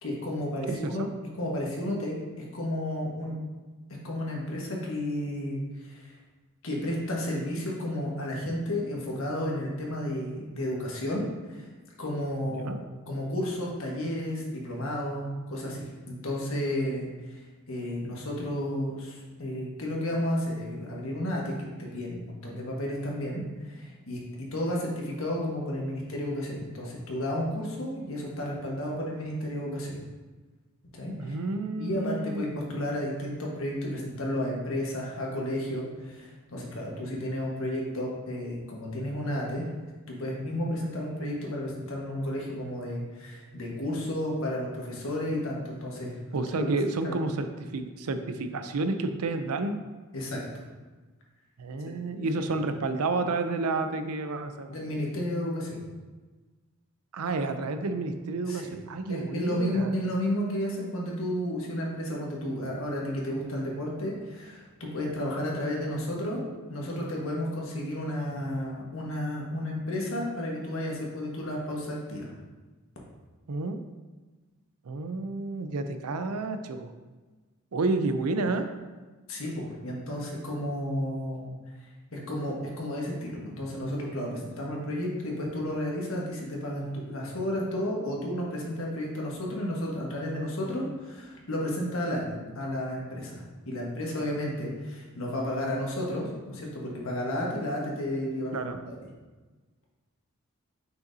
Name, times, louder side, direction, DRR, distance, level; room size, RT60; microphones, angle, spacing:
voice 1, 0.0-1.0 1.4-3.3 4.0-6.2 6.6-11.7 12.0-17.4 17.7-29.9 30.9-31.4 31.8-39.6 40.1-46.2 46.6-46.7 46.9-47.1 50.1-50.4 54.7-55.8 58.5-58.7 59.1-66.4 66.7-72.3 78.5-78.6 79.3-81.6 82.1-98.6 98.9-99.0, left 1 dB, 65° left, -2 dB, 1.4 m, -32 dB
voice 2, 0.7-1.1 12.6-12.8 31.2-32.8 46.3-49.8 51.6-54.8 57.1-59.9 73.5-73.8 74.9-76.9 77.7-78.7 98.5-98.8, right 3 dB, 90° right, 8 dB, 0.5 m, -30 dB
6.3 x 5.7 x 2.7 m, 1.3 s
head